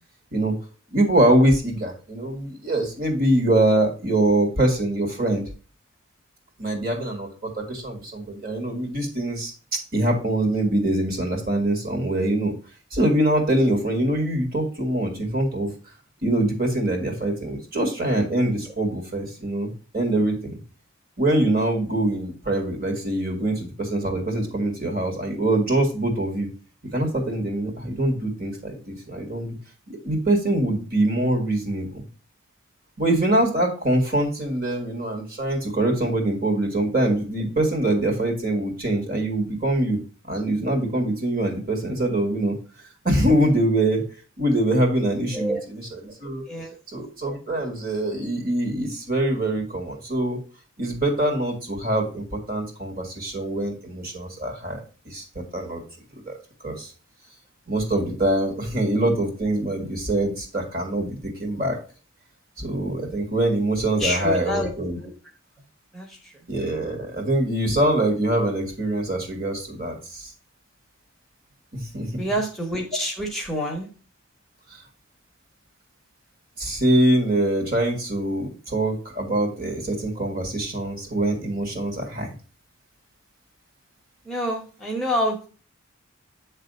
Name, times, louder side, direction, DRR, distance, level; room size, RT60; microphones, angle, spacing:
voice 1, 0.9-5.4 6.6-12.5 12.9-15.7 16.2-20.6 21.2-26.5 26.9-29.5 29.9-32.0 33.0-40.0 40.3-42.6 43.0-44.0 44.4-46.4 46.9-50.4 50.8-54.8 55.1-55.8 56.3-56.4 56.6-56.9 57.7-61.8 62.6-65.0 66.5-70.3 71.7-72.2 76.6-82.3, right 1 dB, 45° right, 2 dB, 1.9 m, -24 dB
voice 2, 46.5-46.8 64.0-64.7 65.0-65.1 65.9-66.3 72.2-73.9 80.2-80.3 84.2-85.5, equal, ahead, 0 dB, 1.0 m, -27 dB
8.3 x 3.3 x 5.3 m, 0.37 s
head